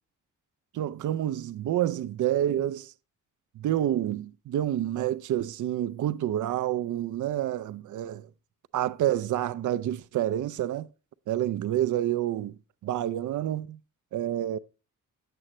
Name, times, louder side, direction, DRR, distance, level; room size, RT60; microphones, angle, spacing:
voice 1, 0.7-2.9 3.6-8.3 8.7-10.9 11.3-12.6 12.8-13.8 14.1-14.6, right 12 dB, 65° right, 0.5 m, -28 dB
9.8 x 7.7 x 3.0 m
cardioid pair, 120°, 32 cm